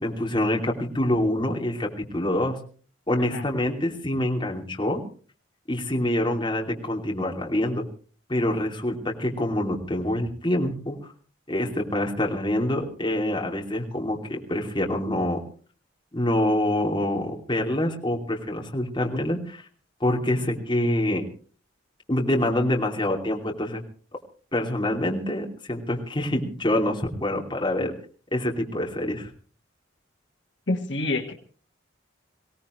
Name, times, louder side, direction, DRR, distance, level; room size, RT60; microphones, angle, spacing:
voice 1, 0.0-1.9 2.1-2.6 3.1-5.0 5.7-7.8 8.3-11.0 11.5-15.4 16.1-19.6 20.0-21.2 22.1-23.8 24.5-27.9 28.3-29.3, left 1 dB, 25° left, 0 dB, 2.8 m, -26 dB
voice 2, 30.7-31.3, left 2 dB, 65° left, 3 dB, 1.6 m, -27 dB
23.5 x 17.5 x 3.2 m, 0.41 s
head